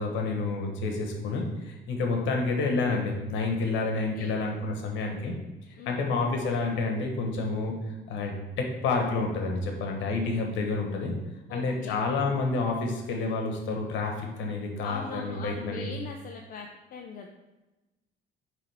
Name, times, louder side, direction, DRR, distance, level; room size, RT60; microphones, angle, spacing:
voice 1, 0.0-5.3 5.9-7.8 8.1-11.1 11.5-15.9, left 3 dB, 85° left, 2 dB, 1.3 m, -29 dB
voice 2, 5.8-6.2 11.5-12.0 14.8-17.3, left 5 dB, 50° left, 2 dB, 0.5 m, -40 dB
9.3 x 3.5 x 3.5 m, 1.1 s
cardioid pair, 165°, 19 cm